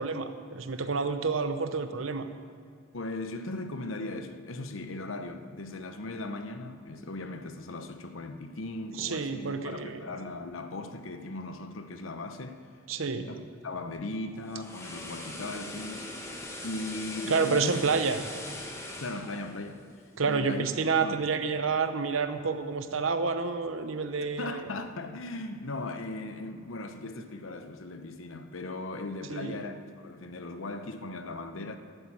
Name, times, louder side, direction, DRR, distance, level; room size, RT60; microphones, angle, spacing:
voice 1, 0.0-2.3 9.0-10.0 12.9-13.3 17.3-18.2 20.2-24.7 29.3-29.6, right 4 dB, 70° right, 0.9 m, -29 dB
voice 2, 2.9-12.6 13.2-16.1 16.6-17.7 19.0-19.8 20.2-21.2 24.4-31.8, left 2 dB, 70° left, 0.9 m, -38 dB
sound 1, 14.3-20.5 20.8-21.0, left 1 dB, 15° left, 1.5 m, -41 dB
12.0 x 8.1 x 8.7 m
head